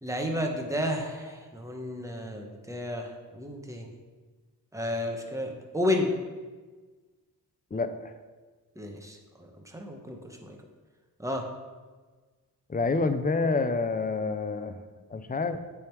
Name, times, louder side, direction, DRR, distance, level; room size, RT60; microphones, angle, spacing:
voice 1, 0.0-3.9 4.7-6.1 8.8-10.6 11.2-11.5, left 1 dB, 10° right, 2 dB, 0.9 m, -32 dB
voice 2, 12.7-14.7 15.1-15.6, left 3 dB, 25° left, 9 dB, 0.4 m, -27 dB
8.6 x 3.5 x 4.6 m, 1.4 s
wide cardioid pair, 95°, 39 cm